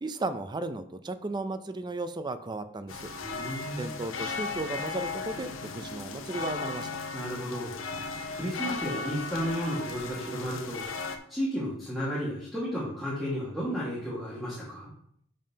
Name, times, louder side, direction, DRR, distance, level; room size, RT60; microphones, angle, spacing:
voice 1, 0.0-3.1 3.8-6.9, right 2 dB, 20° right, 10 dB, 0.4 m, -35 dB
sound 1, 2.9-11.2, left 4 dB, 90° left, 0.8 m, -36 dB
voice 2, 3.2-4.0 7.1-7.7 8.3-10.8 11.3-14.9, equal, ahead, -9 dB, 1.7 m, -33 dB
10.5 x 5.4 x 2.8 m, 0.67 s
head